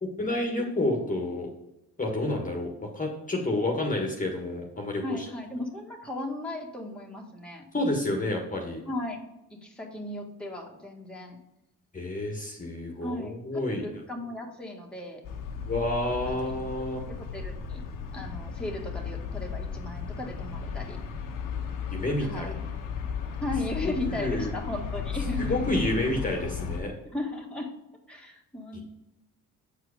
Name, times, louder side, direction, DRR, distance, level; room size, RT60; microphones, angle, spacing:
voice 1, 0.0-1.5 2.0-5.3 7.7-8.8 11.9-13.8 15.7-17.0 21.9-22.5 24.1-24.5 25.4-26.9 28.7-28.8, left 1 dB, 25° left, 1 dB, 1.5 m, -29 dB
voice 2, 5.0-7.7 8.9-9.2 9.5-11.4 13.0-15.2 16.2-16.5 17.1-17.8 18.1-21.0 22.3-22.6 23.4-25.6 27.1-27.7 28.1-28.8, left 1 dB, 5° left, -1 dB, 1.7 m, -36 dB
sound 1, 15.2-26.8, left 6 dB, 75° left, 1.2 m, -35 dB
7.6 x 4.7 x 5.1 m, 0.89 s
supercardioid pair, 80°, 33 cm